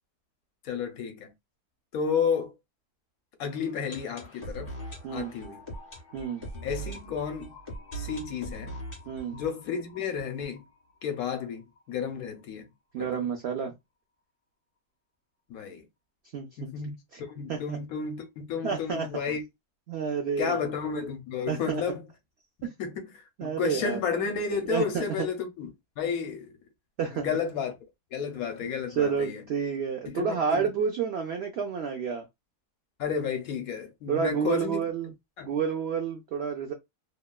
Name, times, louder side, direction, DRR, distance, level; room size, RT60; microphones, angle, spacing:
voice 1, 0.6-1.3 1.9-2.5 3.4-4.7 5.1-5.6 6.6-7.5 7.9-8.8 9.3-10.6 11.0-12.7 13.0-13.2 15.5-15.9 16.6-16.9 17.3-19.4 20.4-22.1 22.6-23.0 23.4-26.6 27.1-27.8 28.1-29.4 30.1-30.6 33.0-34.8 35.4-35.5, left 6 dB, 70° left, 1.0 m, -32 dB
sound 1, 3.4-11.2 11.5-11.6 11.7-11.8 12.4-12.5, right 2 dB, 35° left, 1.4 m, -42 dB
voice 2, 6.1-6.4 9.1-9.4 12.9-13.7 16.3-16.7 17.1-17.2 17.5-17.8 18.6-19.1 19.9-20.6 21.5-21.8 22.6-22.7 23.4-24.0 24.7-25.3 27.0-27.3 29.0-32.2 34.1-35.1 35.4-36.7, right 6 dB, 75° right, 0.5 m, -29 dB
2.9 x 2.2 x 2.2 m
omnidirectional pair, 1.6 m